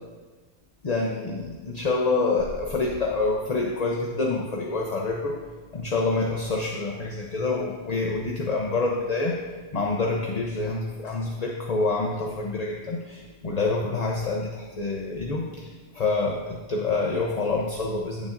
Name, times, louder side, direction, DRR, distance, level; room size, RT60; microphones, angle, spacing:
voice 1, 0.8-5.4 5.7-9.4 9.7-18.3, left 3 dB, 40° left, -1 dB, 0.9 m, -27 dB
15.5 x 7.2 x 2.6 m, 1.3 s
omnidirectional pair, 1.1 m